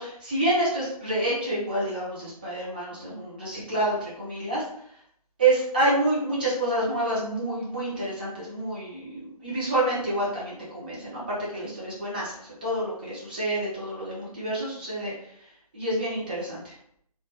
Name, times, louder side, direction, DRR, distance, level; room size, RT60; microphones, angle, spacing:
voice 1, 0.0-4.6 5.4-15.1 15.7-16.7, right 1 dB, 15° right, -7 dB, 0.4 m, -28 dB
2.1 x 2.1 x 2.8 m, 0.69 s
figure-of-eight pair, 145°, 20 cm